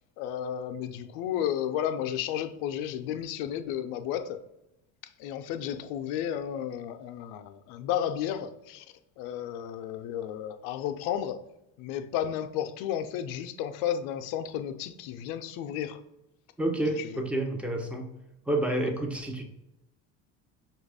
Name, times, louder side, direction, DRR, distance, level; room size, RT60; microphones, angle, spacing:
voice 1, 0.2-4.4 5.2-8.9 9.2-11.4 11.8-16.0 17.0-17.2 18.8-18.9, left 10 dB, 70° left, 8 dB, 0.6 m, -33 dB
voice 2, 16.6-18.2 18.5-19.4, right 1 dB, 5° right, 3 dB, 0.7 m, -29 dB
5.7 x 2.4 x 3.4 m, 0.89 s
supercardioid pair, 95°, 40 cm